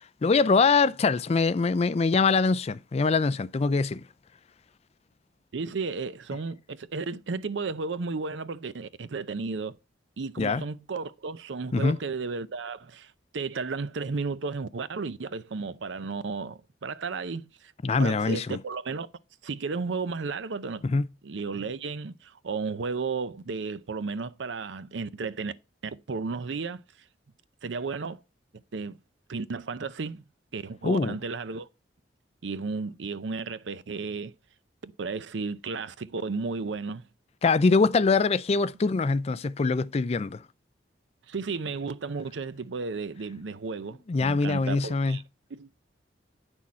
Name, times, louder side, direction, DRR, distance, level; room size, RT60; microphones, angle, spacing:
voice 1, 0.2-4.0 10.4-10.6 11.7-12.0 17.8-18.6 20.8-21.1 30.8-31.1 37.4-40.4 44.1-45.2, left 4 dB, 35° left, 0.4 m, -23 dB
voice 2, 5.5-9.7 10.2-17.7 18.0-19.1 19.4-20.8 21.2-25.5 25.8-26.8 27.6-28.2 28.7-29.0 29.3-30.2 30.5-31.7 32.4-34.3 34.8-37.1 41.3-45.2 45.5-45.7, right 4 dB, 80° right, 0.6 m, -33 dB
8.8 x 6.3 x 4.2 m
head